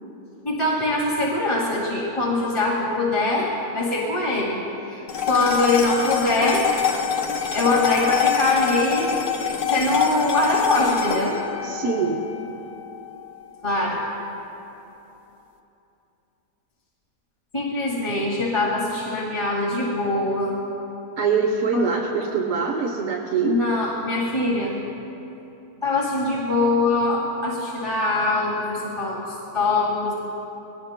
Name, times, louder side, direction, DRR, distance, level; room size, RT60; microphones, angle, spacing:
voice 1, 0.4-4.6 4.9-6.6 7.5-9.1 9.7-11.4 13.6-14.0 17.5-20.6 21.7-22.0 23.4-24.7 25.8-30.1, left 2 dB, 20° left, -6 dB, 1.9 m, -23 dB
sound 1, 5.1-13.6, left 7 dB, 55° left, 1.2 m, -25 dB
voice 2, 11.6-12.2 21.2-23.6, right 5 dB, 60° right, 0 dB, 1.3 m, -23 dB
22.5 x 18.5 x 2.2 m, 3.0 s
omnidirectional pair, 1.7 m